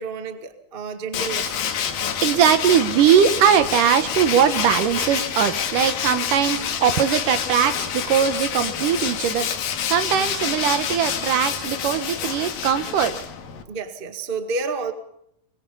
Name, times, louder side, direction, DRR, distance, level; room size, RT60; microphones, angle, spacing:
voice 1, 0.0-1.6 10.1-10.5 13.6-14.9, right 4 dB, 25° right, 6 dB, 1.1 m, -30 dB
Tools, 1.1-13.6, left 8 dB, 75° left, 3.4 m, -27 dB
voice 2, 2.2-9.5 9.9-13.2, right 8 dB, 70° right, 10 dB, 2.5 m, -20 dB
24.0 x 21.5 x 5.5 m, 0.73 s
omnidirectional pair, 4.2 m